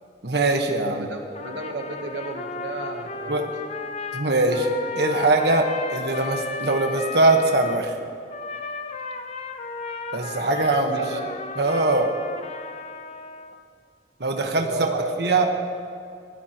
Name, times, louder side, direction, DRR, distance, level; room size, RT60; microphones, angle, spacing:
voice 1, 0.2-1.1 3.3-3.5 4.1-4.7 5.0-7.9 10.1-11.0 11.6-12.1 14.2-14.7 14.9-15.5, right 2 dB, 65° right, 3 dB, 1.3 m, -22 dB
voice 2, 1.0-3.7 10.5-11.4 14.4-15.4, right 2 dB, 85° right, 3 dB, 1.2 m, -34 dB
Trumpet, 1.4-7.8 8.3-13.6, left 4 dB, 35° left, 0.8 m, -34 dB
23.5 x 17.5 x 3.0 m, 2.3 s
head